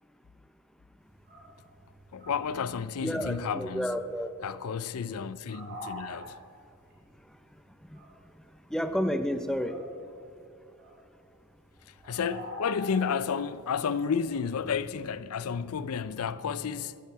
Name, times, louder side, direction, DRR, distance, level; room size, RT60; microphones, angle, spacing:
sound 1, 1.0-10.4 10.7-16.2, left 1 dB, 45° right, 4.0 m, -47 dB
voice 1, 2.1-3.9 4.4-6.4 12.0-17.0, left 6 dB, 80° left, 0.5 m, -31 dB
voice 2, 3.0-4.3 7.9-8.0 8.7-9.8, equal, 5° left, 0.6 m, -30 dB
14.5 x 14.0 x 4.6 m
head